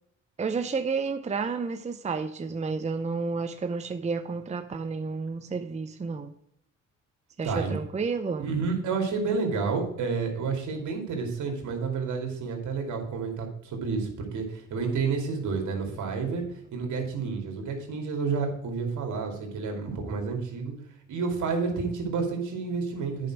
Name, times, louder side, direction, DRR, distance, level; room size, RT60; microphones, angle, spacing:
voice 1, 0.4-6.3 7.4-8.5, right 4 dB, 25° right, 8 dB, 0.7 m, -31 dB
voice 2, 7.4-7.8 8.4-14.4 14.7-16.5 16.7-20.7 21.1-23.3, right 5 dB, 75° right, 2 dB, 2.6 m, -30 dB
9.3 x 5.3 x 6.0 m, 0.71 s
cardioid pair, 90°, 30 cm